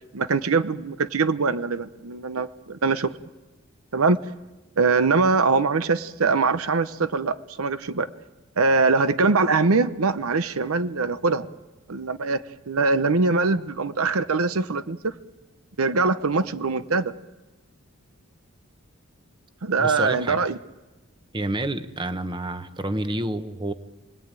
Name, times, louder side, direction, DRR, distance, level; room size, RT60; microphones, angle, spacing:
voice 1, 0.1-3.1 3.9-4.2 4.8-8.1 8.6-11.5 11.9-15.1 15.8-17.1 19.6-20.6, right 4 dB, 80° right, 12 dB, 0.8 m, -22 dB
voice 2, 19.8-20.4 21.3-23.7, right 1 dB, 20° right, 10 dB, 1.0 m, -29 dB
29.0 x 20.0 x 9.0 m, 1.1 s
head